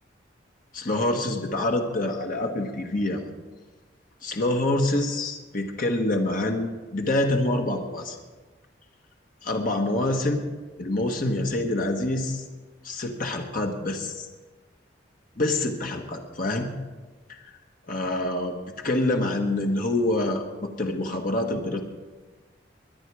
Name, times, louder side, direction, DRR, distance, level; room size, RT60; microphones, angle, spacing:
voice 1, 0.7-3.2 4.2-8.2 9.4-10.4 10.8-12.4 12.8-14.3 15.4-16.7 17.9-21.8, left 1 dB, 50° left, 3 dB, 1.4 m, -26 dB
22.0 x 10.0 x 4.8 m, 1.3 s
head